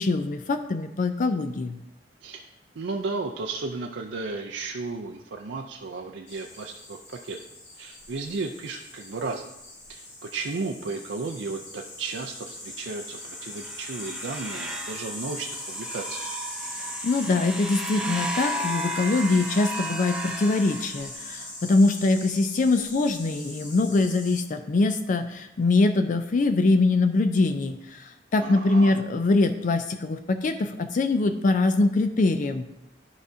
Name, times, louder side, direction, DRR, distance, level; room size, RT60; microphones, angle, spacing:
voice 1, 0.0-1.8 17.0-32.6, left 3 dB, 45° left, 9 dB, 0.4 m, -23 dB
voice 2, 2.8-7.4 7.8-9.5 9.9-16.3 28.4-29.0, right 3 dB, 75° right, 2 dB, 0.5 m, -34 dB
sound 1, 6.3-24.4, left 1 dB, 80° left, 2.0 m, -40 dB
sound 2, 13.2-21.5, right 1 dB, 5° right, 0.7 m, -35 dB
12.5 x 4.9 x 2.7 m, 0.90 s
head